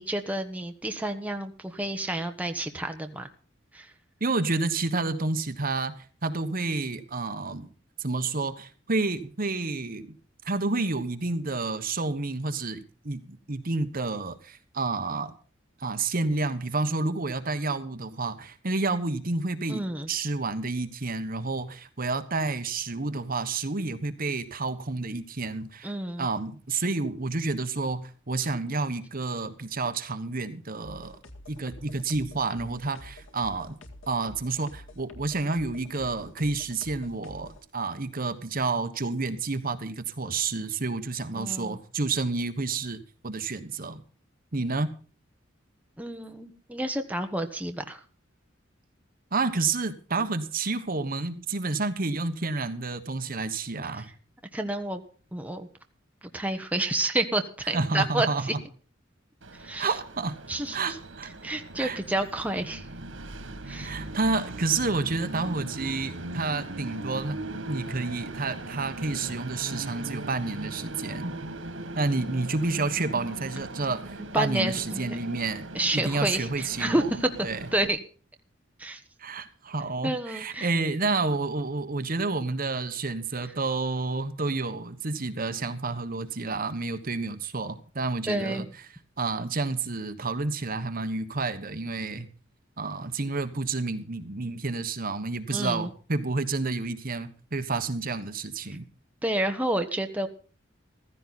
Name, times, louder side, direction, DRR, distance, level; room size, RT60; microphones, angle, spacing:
voice 1, 0.0-3.3 3.7-3.9 19.7-20.1 25.8-26.3 41.3-41.8 46.0-48.0 53.9-54.0 54.5-55.0 55.3-55.7 56.3-58.3 59.6-59.9 60.5-61.0 61.4-62.9 63.7-64.0 74.3-75.2 75.7-77.3 77.7-78.0 78.8-79.0 80.0-80.7 88.3-88.7 95.5-95.9 99.2-100.3, right 1 dB, 10° right, 5 dB, 1.2 m, -29 dB
voice 2, 4.2-7.7 8.0-10.2 10.4-15.3 15.8-25.9 26.2-31.2 31.5-33.8 34.1-44.0 44.5-44.9 49.3-54.1 57.7-58.6 59.8-60.4 60.7-61.3 61.8-62.0 63.7-67.4 67.6-71.3 71.9-75.7 75.9-77.1 77.4-77.7 79.2-88.6 89.2-92.3 92.8-98.8, right 3 dB, 50° right, 9 dB, 1.3 m, -30 dB
sound 1, 30.8-37.6, left 1 dB, 90° left, 2.0 m, -47 dB
Train, 59.4-77.9, right 2 dB, 90° right, 2.0 m, -39 dB
15.5 x 14.5 x 4.2 m, 0.39 s
head